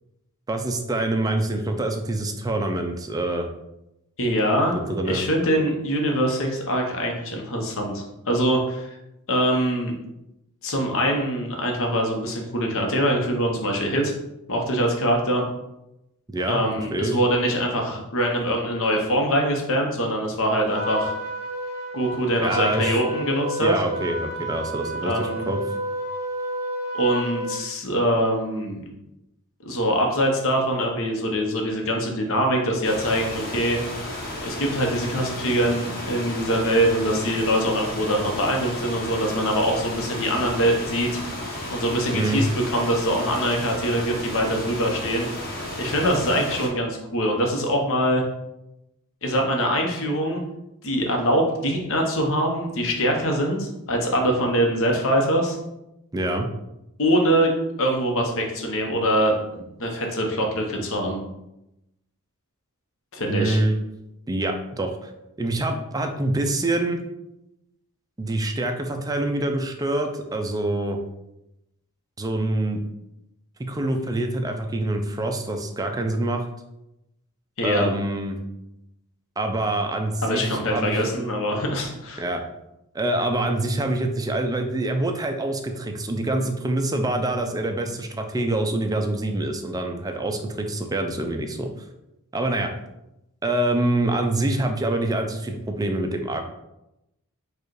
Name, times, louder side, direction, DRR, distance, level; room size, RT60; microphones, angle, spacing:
voice 1, 0.5-3.5 4.7-5.2 16.3-16.6 16.9-17.2 22.4-23.0 23.6-25.6 42.1-42.4 56.1-56.5 63.3-63.8 64.3-65.1 65.4-67.0 68.2-71.0 72.2-72.8 73.6-76.4 77.6-78.4 79.4-81.0 82.2-82.4 82.9-91.7 92.3-92.7 93.4-96.5, right 2 dB, 15° right, 4 dB, 0.4 m, -25 dB
voice 2, 4.2-4.7 5.0-8.9 9.3-9.9 10.6-14.1 14.5-15.4 16.5-21.1 21.9-23.8 25.0-25.4 26.9-28.8 29.6-33.8 34.4-41.2 41.7-45.3 45.8-48.2 49.2-50.4 50.8-55.6 57.0-57.5 57.8-61.2 63.1-63.6 77.6-77.8 80.2-82.2, equal, 65° left, 1 dB, 0.9 m, -23 dB
Trumpet, 20.7-27.6, equal, 45° right, 1.3 m, -31 dB
sound 1, 32.8-46.7, left 1 dB, 45° left, 1.1 m, -33 dB
4.7 x 2.4 x 4.7 m, 0.88 s
head